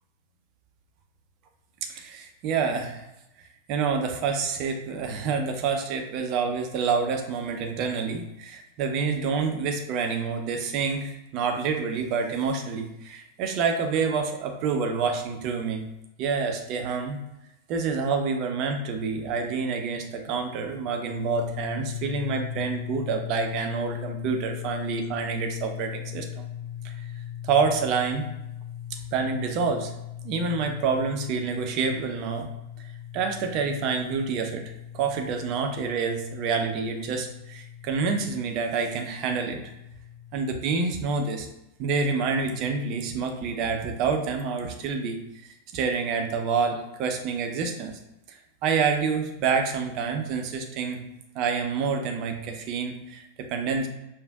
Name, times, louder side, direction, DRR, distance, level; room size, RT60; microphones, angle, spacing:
voice 1, 1.8-3.1 3.4-15.8 16.2-17.2 17.7-26.4 26.8-26.9 27.4-28.3 29.1-29.9 30.2-32.5 33.1-34.6 34.9-39.6 40.3-41.5 41.8-45.2 45.7-47.9 48.3-51.0 51.3-53.9, right 5 dB, 40° right, 4 dB, 0.6 m, -27 dB
Dist Chr Gmin up, 21.0-40.3, left 10 dB, 5° right, 1.0 m, -39 dB
5.0 x 2.6 x 2.3 m, 0.89 s
figure-of-eight pair, 90°, 0 cm